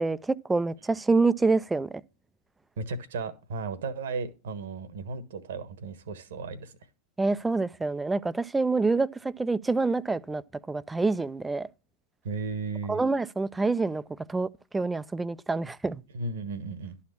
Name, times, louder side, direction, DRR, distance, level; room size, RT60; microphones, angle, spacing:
voice 1, 0.0-2.0 7.2-10.4 10.7-11.7 12.9-14.0 14.3-16.0, right 3 dB, 10° right, 0.4 m, -26 dB
voice 2, 2.8-6.7 12.2-13.0 16.1-17.0, right 4 dB, 70° right, 1.2 m, -35 dB
11.5 x 4.3 x 7.0 m
hypercardioid pair, 95°, 0 cm